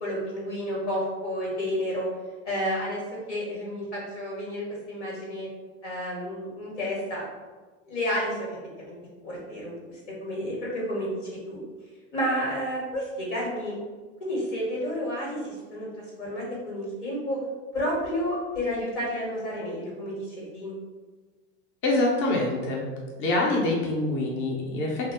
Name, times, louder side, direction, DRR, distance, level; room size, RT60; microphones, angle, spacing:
voice 1, 0.0-2.1 2.4-3.0 3.3-5.5 5.8-7.2 7.9-8.6 8.8-9.0 9.2-11.1 11.5-11.6 12.1-13.8 14.2-15.9 16.2-17.4 17.7-20.7, equal, 85° left, -4 dB, 1.3 m, -31 dB
voice 2, 21.8-22.9 23.2-25.1, left 2 dB, 35° left, -2 dB, 0.7 m, -25 dB
2.3 x 2.2 x 3.5 m, 1.3 s
hypercardioid pair, 90°, 34 cm